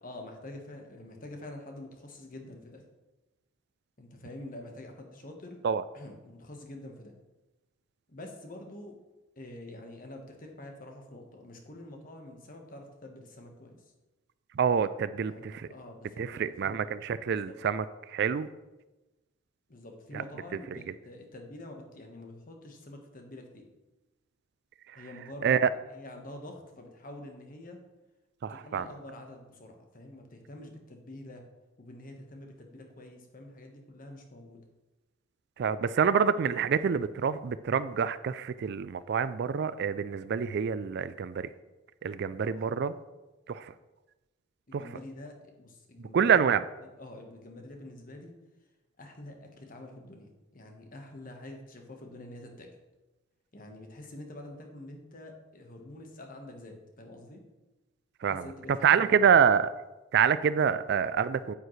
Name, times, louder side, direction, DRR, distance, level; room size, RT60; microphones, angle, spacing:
voice 1, 0.0-2.8 4.0-5.6 5.9-7.1 8.1-9.0 9.4-13.8 15.2-16.8 17.3-17.6 19.7-23.7 24.9-25.6 25.9-27.8 28.5-31.4 31.8-34.6 42.4-42.8 44.7-46.4 46.8-48.3 49.0-52.7 53.5-57.4 58.4-59.2, left 1 dB, 40° left, 3 dB, 1.3 m, -46 dB
voice 2, 14.5-15.7 16.2-18.5 20.7-20.8 25.4-25.7 28.4-28.9 35.6-41.5 42.0-42.9 43.5-43.7 44.7-44.9 46.1-46.6 58.2-59.7 60.1-61.5, right 7 dB, 50° right, 15 dB, 0.3 m, -26 dB
9.1 x 8.8 x 3.2 m, 1.1 s
head